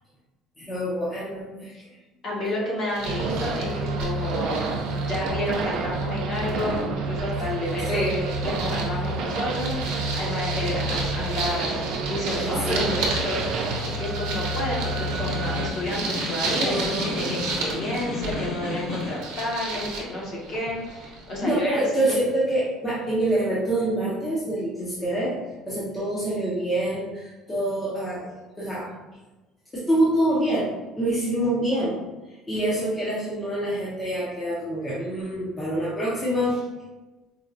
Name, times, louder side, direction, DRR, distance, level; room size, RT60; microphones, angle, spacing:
voice 1, 0.6-1.7 7.9-8.2 12.3-13.0 16.6-17.2 21.4-25.4 25.7-28.9 29.7-32.0 32.5-36.6, right 1 dB, 10° left, -9 dB, 0.6 m, -26 dB
voice 2, 2.2-22.1, left 1 dB, 35° left, -4 dB, 0.9 m, -31 dB
sound 1, 2.9-6.8 7.1-21.5, right 3 dB, 85° right, 0.7 m, -34 dB
sound 2, 3.1-15.7, right 2 dB, 50° right, 0.3 m, -29 dB
Snare drum, 14.8-19.3, left 2 dB, 70° left, 1.4 m, -33 dB
4.3 x 2.2 x 2.5 m, 1.1 s
cardioid pair, 180°, 0 cm